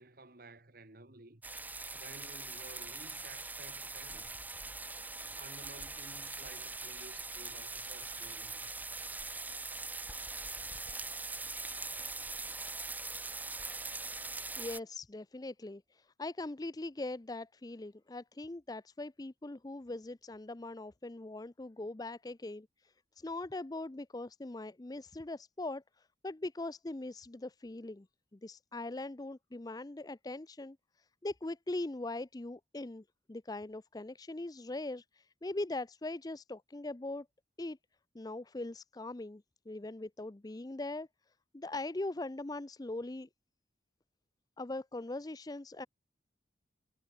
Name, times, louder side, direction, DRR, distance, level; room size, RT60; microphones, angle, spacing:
voice 1, 0.0-1.4 1.9-4.3 5.3-8.8, right 2 dB, 50° right, 2.1 m, -54 dB
sound 1, 1.4-14.8, right 3 dB, 10° right, 1.9 m, -42 dB
voice 2, 14.6-28.1 28.3-30.8 31.2-37.3 37.6-37.8 38.1-41.1 41.5-43.3 44.6-45.9, left 2 dB, 20° left, 0.5 m, -41 dB
head